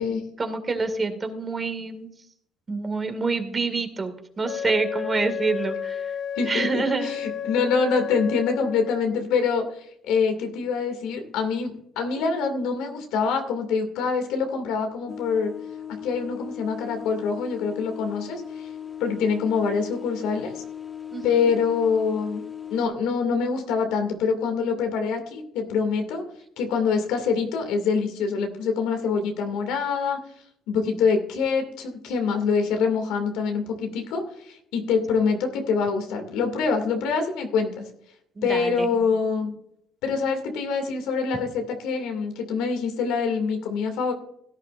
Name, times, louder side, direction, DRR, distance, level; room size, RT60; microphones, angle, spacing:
voice 1, 0.4-2.1 2.7-6.1 6.5-7.3 21.1-21.5 38.4-38.9, right 4 dB, 30° right, 7 dB, 2.1 m, -27 dB
Wind instrument woodwind instrument, 4.4-9.1, left 8 dB, 60° left, 0.6 m, -32 dB
voice 2, 6.4-15.5 16.0-18.7 19.0-20.6 21.2-22.4 22.7-26.2 26.6-30.2 30.7-37.8 38.4-39.5 40.0-44.1, left 5 dB, 90° left, 5 dB, 2.3 m, -25 dB
sound 1, 15.1-22.9, left 9 dB, 25° left, 1.4 m, -38 dB
16.5 x 10.5 x 2.5 m, 0.73 s
cardioid pair, 95°, 0 cm